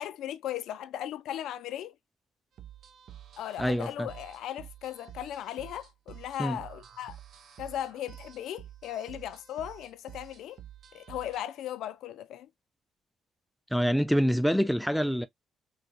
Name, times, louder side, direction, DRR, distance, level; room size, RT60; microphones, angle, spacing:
voice 1, 0.0-2.0 3.4-7.2 7.6-10.6 10.9-12.5, left 11 dB, 75° left, 0.4 m, -37 dB
sound 1, 2.6-11.4, right 10 dB, 65° right, 0.5 m, -49 dB
voice 2, 3.6-4.1 6.4-6.6 13.7-15.3, equal, ahead, 0.4 m, -26 dB
3.8 x 2.2 x 2.7 m
hypercardioid pair, 50°, 0 cm